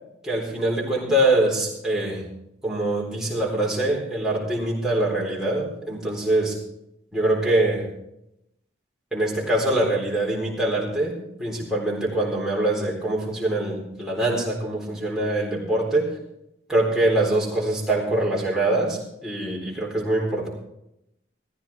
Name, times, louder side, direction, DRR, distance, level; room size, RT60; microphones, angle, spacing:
voice 1, 0.2-2.2 2.6-6.6 7.1-7.9 9.1-16.1 16.7-20.5, right 1 dB, 5° right, -4 dB, 3.8 m, -24 dB
15.5 x 15.0 x 3.6 m, 0.81 s
head